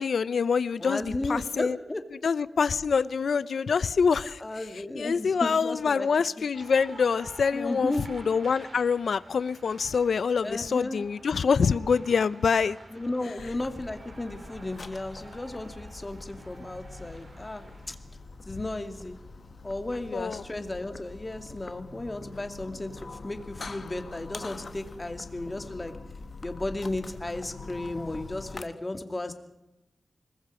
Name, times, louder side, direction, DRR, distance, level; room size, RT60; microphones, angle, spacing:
voice 1, 0.0-1.0 1.3-1.8 2.2-4.4 5.0-12.8 20.1-20.4, left 5 dB, 80° left, 17 dB, 0.7 m, -25 dB
voice 2, 0.8-2.0 4.4-6.1 7.5-8.1 10.4-11.1 12.9-18.0 18.5-19.2 19.6-25.9 26.4-29.3, left 2 dB, 25° left, 7 dB, 2.5 m, -34 dB
sound 1, 6.5-17.9, right 2 dB, 60° right, 5.2 m, -50 dB
sound 2, 13.4-28.6, left 3 dB, 50° left, 1.3 m, -44 dB
26.0 x 21.0 x 5.0 m, 0.92 s
wide cardioid pair, 90°, 0 cm